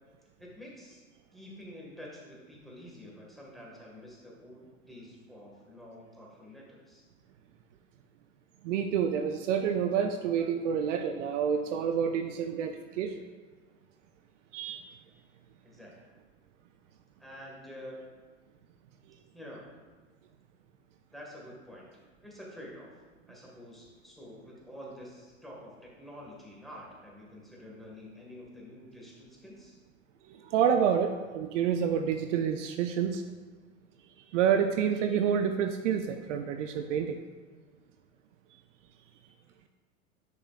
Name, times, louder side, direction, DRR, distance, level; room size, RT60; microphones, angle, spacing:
voice 1, 0.4-1.0 1.3-4.6 4.9-7.0 15.6-15.9 17.2-18.0 19.3-19.6 21.1-21.9 22.2-22.9 23.3-29.7, equal, ahead, -4 dB, 1.7 m, -48 dB
voice 2, 8.6-13.2 14.5-14.9 30.3-33.2 34.3-37.2, right 8 dB, 60° right, 6 dB, 0.6 m, -28 dB
10.5 x 4.9 x 2.4 m, 1.4 s
hypercardioid pair, 100°, 41 cm